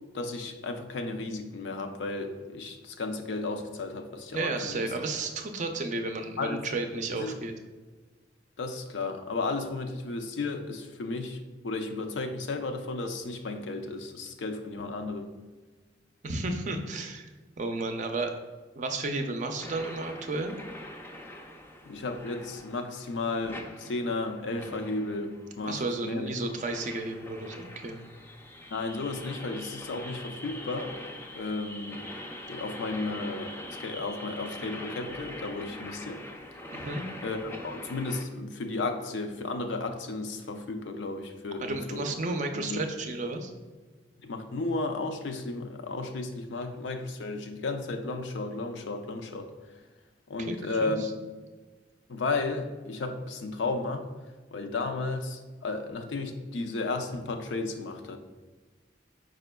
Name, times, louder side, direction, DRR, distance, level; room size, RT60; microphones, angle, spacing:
voice 1, 0.1-4.9 6.4-6.6 7.1-7.3 8.6-11.4 11.6-15.3 21.9-26.3 28.7-30.9 31.3-32.0 32.5-33.5 33.8-36.2 37.2-42.1 42.5-42.8 44.2-49.5 50.3-51.0 52.1-54.0 54.5-58.2, left 3 dB, 80° left, 5 dB, 0.5 m, -33 dB
voice 2, 4.3-7.5 16.2-17.3 17.6-18.4 18.8-20.5 25.6-28.0 36.7-37.0 41.6-43.5 50.4-51.1, right 2 dB, 45° right, 5 dB, 0.5 m, -32 dB
sound 1, 19.6-38.2, left 1 dB, 15° left, 0.4 m, -43 dB
4.9 x 4.9 x 2.2 m, 1.3 s
head